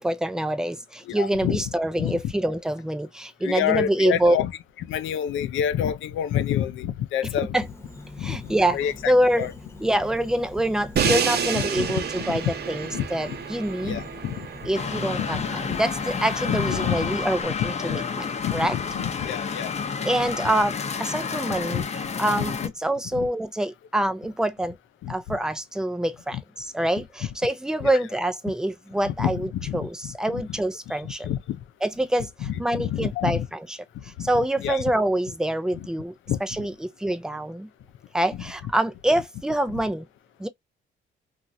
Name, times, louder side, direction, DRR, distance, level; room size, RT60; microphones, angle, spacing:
voice 1, 0.0-4.4 7.4-7.7 8.2-8.8 9.1-9.5 9.8-14.0 14.7-18.8 20.0-24.8 25.1-31.3 31.8-33.8 34.2-36.1 36.4-37.7 38.1-40.1 40.4-40.5, right 1 dB, 5° right, 0.4 m, -26 dB
voice 2, 1.1-1.6 2.0-2.3 3.4-4.5 4.8-7.6 8.2-8.4 8.7-9.1 9.4-9.5 11.0-11.1 11.5-12.5 12.9-13.0 13.8-14.4 15.2-15.8 16.5-17.2 17.6-18.0 18.4-19.7 21.7-21.9 22.4-22.7 23.1-23.3 25.0-25.4 26.3-26.4 27.8-27.9 29.1-30.4 30.9-31.6 32.4-33.5 34.2-34.3 34.6-34.8 35.8-35.9 36.3-36.4 38.3-38.4 39.7-39.8, left 10 dB, 80° left, 0.5 m, -28 dB
Insect, 7.6-17.4, left 2 dB, 15° left, 1.0 m, -43 dB
Crash cymbal, 11.0-16.9, right 7 dB, 55° right, 0.7 m, -30 dB
sound 1, 14.7-22.7, left 5 dB, 35° left, 0.7 m, -30 dB
3.0 x 2.5 x 2.6 m
cardioid pair, 90°, 20 cm